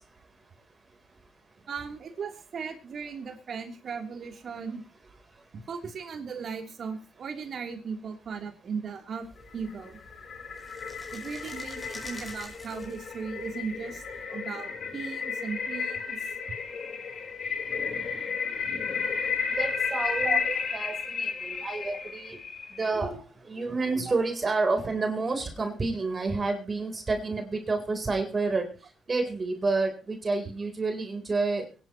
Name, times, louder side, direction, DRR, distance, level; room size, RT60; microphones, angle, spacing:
voice 1, 1.7-4.8 5.7-9.3 9.5-10.0 11.1-14.0 14.3-16.2 19.9-20.6 26.3-26.4, right 5 dB, 55° right, 4 dB, 3.3 m, -37 dB
sound 1, 9.2-14.3, equal, 10° left, 5.5 m, -49 dB
sound 2, 9.6-23.0, left 5 dB, 55° left, 3.8 m, -33 dB
voice 2, 19.6-20.4 20.7-22.4 22.8-23.2 23.5-28.6 29.1-31.6, right 3 dB, 30° right, 5 dB, 3.8 m, -29 dB
23.5 x 11.0 x 3.1 m, 0.33 s
cardioid pair, 90°, 0 cm